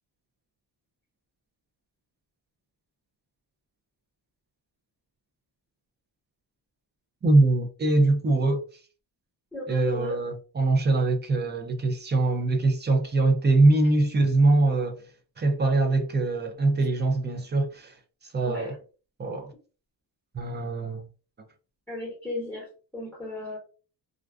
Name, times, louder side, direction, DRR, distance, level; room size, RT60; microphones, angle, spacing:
voice 1, 7.2-8.6 9.7-15.0 15.4-18.0 18.2-18.8 19.2-19.5 20.3-21.1, right 2 dB, 25° right, 0.4 m, -23 dB
voice 2, 9.5-10.1 18.4-18.7 21.9-23.6, left 2 dB, ahead, 1.0 m, -35 dB
2.4 x 2.2 x 2.3 m
cardioid pair, 130°, 43 cm